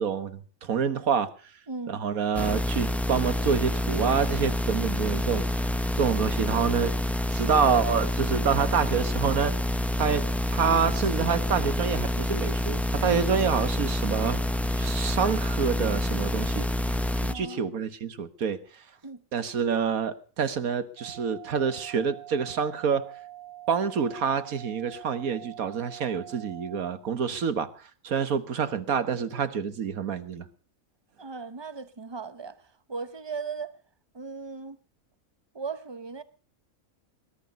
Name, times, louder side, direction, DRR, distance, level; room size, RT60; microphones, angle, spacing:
voice 1, 0.0-1.3 1.9-5.6 5.9-6.9 7.3-9.6 10.0-16.7 17.2-18.6 19.3-23.1 23.7-27.7 28.0-30.4, right 6 dB, 80° right, 1.8 m, -27 dB
voice 2, 1.7-2.0 17.2-17.7 19.0-19.2 31.2-32.6 32.9-33.7 34.1-34.8 35.5-36.2, right 4 dB, 20° right, 0.8 m, -37 dB
sound 1, 2.3-17.3, left 1 dB, ahead, 0.4 m, -27 dB
sound 2, 21.0-26.9, right 14 dB, 60° right, 2.5 m, -45 dB
20.0 x 11.5 x 5.3 m
omnidirectional pair, 1.5 m